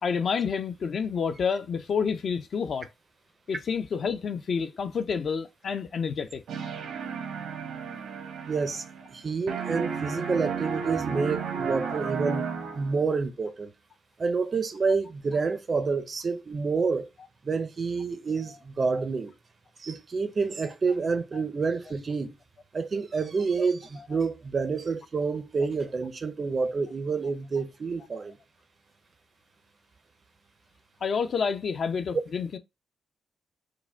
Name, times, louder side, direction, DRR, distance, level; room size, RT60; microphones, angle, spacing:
voice 1, 0.0-2.9 3.5-6.4 31.0-32.6, left 6 dB, 45° left, 0.4 m, -29 dB
sound 1, 6.5-9.2 9.5-13.1, right 6 dB, 90° right, 1.0 m, -33 dB
voice 2, 8.5-8.8 9.1-13.7 14.2-17.1 17.4-19.3 19.8-22.3 22.7-28.4, right 4 dB, 30° right, 0.5 m, -28 dB
4.7 x 2.1 x 3.4 m
wide cardioid pair, 165°, 0 cm